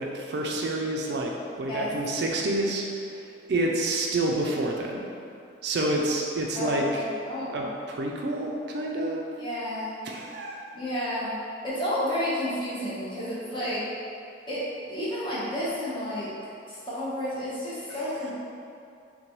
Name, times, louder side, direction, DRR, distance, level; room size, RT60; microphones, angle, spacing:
voice 1, 0.0-1.3 1.6-2.8 3.5-5.0 5.6-7.0 7.5-9.3 10.0-10.6, right 2 dB, 55° right, -1 dB, 0.4 m, -28 dB
voice 2, 6.5-7.7 9.4-9.9 10.7-11.4 11.6-13.8 14.5-16.3 16.7-18.3, left 1 dB, 25° left, -9 dB, 0.9 m, -31 dB
5.8 x 2.2 x 3.0 m, 2.6 s
head